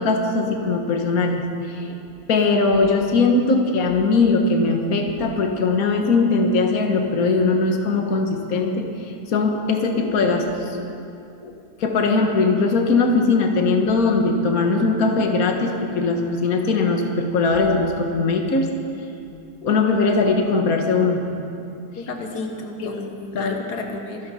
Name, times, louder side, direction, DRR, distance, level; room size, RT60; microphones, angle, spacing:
voice 1, 0.0-1.9 2.3-11.0 11.4-11.5 11.8-18.7 19.6-21.2 22.8-22.9 23.3-23.5, left 3 dB, 65° left, 3 dB, 1.7 m, -20 dB
voice 2, 22.0-24.3, left 3 dB, 85° left, 3 dB, 1.7 m, -32 dB
25.0 x 11.0 x 4.2 m, 2.5 s
omnidirectional pair, 1.7 m